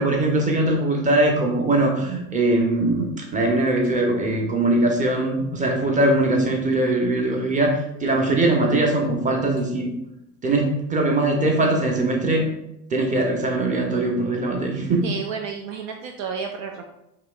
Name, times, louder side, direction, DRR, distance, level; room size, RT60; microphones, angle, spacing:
voice 1, 0.0-9.9 10.4-12.5 12.9-15.0, right 2 dB, 15° right, 1 dB, 0.8 m, -21 dB
voice 2, 15.0-16.8, right 6 dB, 55° right, 4 dB, 0.5 m, -31 dB
4.9 x 2.9 x 2.3 m, 0.87 s
hypercardioid pair, 75°, 47 cm